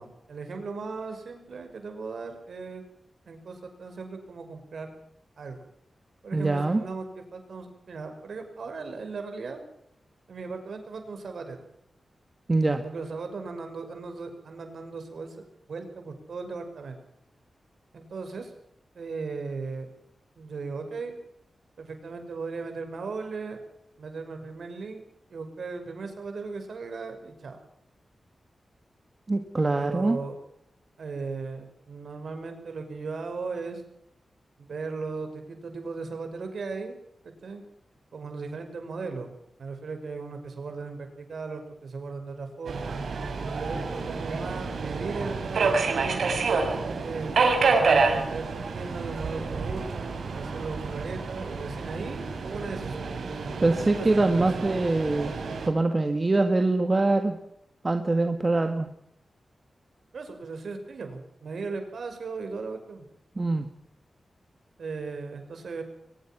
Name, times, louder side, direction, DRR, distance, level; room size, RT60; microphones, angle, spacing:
voice 1, 0.0-2.8 3.3-4.9 5.4-5.6 6.2-9.6 10.3-11.6 12.8-15.4 15.7-17.0 17.9-18.5 18.9-19.9 20.4-21.2 21.8-23.6 24.0-25.0 25.3-27.6 29.7-30.4 31.0-33.8 34.6-37.0 37.2-37.6 38.1-43.0 43.6-46.5 47.0-53.1 53.6-55.1 60.1-63.0 64.8-65.8, right 4 dB, 70° right, 6 dB, 6.0 m, -37 dB
voice 2, 6.3-6.8 12.5-12.8 29.3-30.2 53.6-55.3 55.7-57.4 57.8-58.9 63.4-63.7, right 2 dB, 25° right, 6 dB, 1.7 m, -24 dB
Subway metro underground, 42.7-55.7, right 4 dB, 85° right, 5.6 m, -28 dB
23.0 x 21.0 x 6.0 m, 0.74 s
wide cardioid pair, 155°, 0 cm